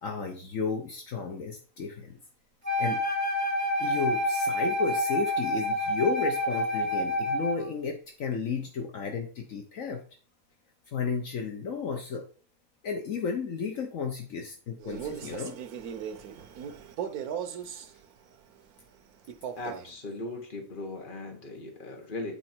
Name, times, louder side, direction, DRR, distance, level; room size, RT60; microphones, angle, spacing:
voice 1, 0.0-2.2 2.8-3.0 3.8-10.0 10.9-12.2 12.8-15.5, left 5 dB, 65° left, 4 dB, 1.3 m, -33 dB
Wind instrument woodwind instrument, 2.6-7.7, left 1 dB, 30° right, 1.9 m, -28 dB
Male speech man speaking, 14.8-17.9 19.3-19.9, right 8 dB, 85° right, 1.3 m, -37 dB
voice 2, 19.6-22.4, left 2 dB, 35° left, 4 dB, 1.6 m, -38 dB
8.7 x 4.5 x 4.4 m, 0.39 s
omnidirectional pair, 1.5 m